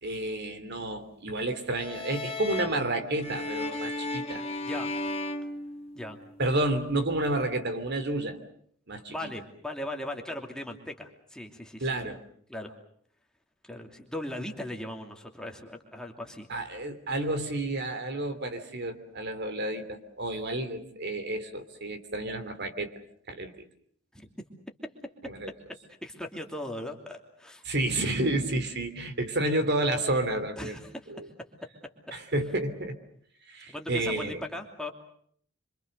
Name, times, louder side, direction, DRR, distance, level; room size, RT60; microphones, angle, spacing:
voice 1, 0.0-4.4 6.4-8.4 8.9-9.3 11.8-12.2 16.5-22.9 23.3-23.5 25.2-25.5 27.6-30.8 31.1-31.3 32.1-32.9 33.5-34.4, right 1 dB, 50° right, 9 dB, 3.0 m, -30 dB
sound 1, 1.7-6.4, left 2 dB, 30° left, 2.0 m, -35 dB
voice 2, 9.1-11.9 12.5-12.7 13.6-16.5 24.1-24.3 26.0-27.6 30.6-31.1 33.7-34.9, left 1 dB, 5° left, 2 dB, 2.8 m, -38 dB
26.5 x 25.5 x 6.7 m, 0.63 s
head